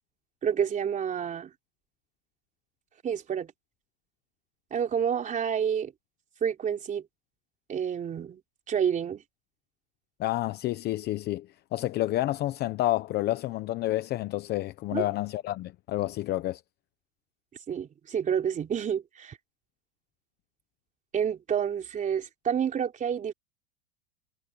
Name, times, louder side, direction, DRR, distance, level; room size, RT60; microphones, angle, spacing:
voice 1, 0.4-1.5 3.0-3.5 4.7-5.9 6.4-7.0 7.7-8.4 8.7-9.2 14.9-15.0 17.7-19.4 21.1-23.3, right 8 dB, 20° right, 3.7 m, -29 dB
voice 2, 10.2-11.5 11.7-16.6, left 16 dB, 25° left, 0.8 m, -29 dB
supercardioid pair, 150°, 39 cm